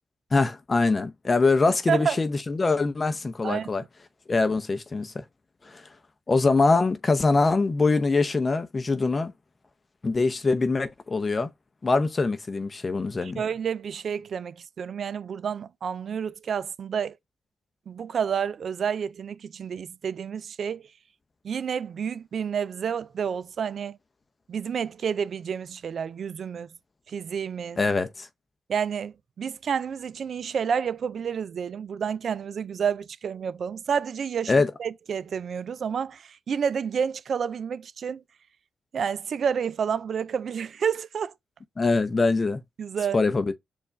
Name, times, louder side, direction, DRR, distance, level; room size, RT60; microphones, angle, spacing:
voice 1, 0.3-3.8 4.3-5.2 5.6-5.9 6.3-9.3 10.0-11.5 11.8-13.4 27.8-28.3 34.5-34.7 41.8-42.6 43.1-43.5, left 3 dB, 35° left, 0.5 m, -23 dB
voice 2, 1.9-2.2 3.4-3.7 13.2-17.2 17.9-20.8 21.4-24.0 24.5-26.7 27.1-27.8 28.7-34.5 34.8-38.2 38.9-41.3 42.8-43.2, right 7 dB, 65° right, 0.3 m, -29 dB
4.4 x 2.4 x 3.2 m
supercardioid pair, 60°, 0 cm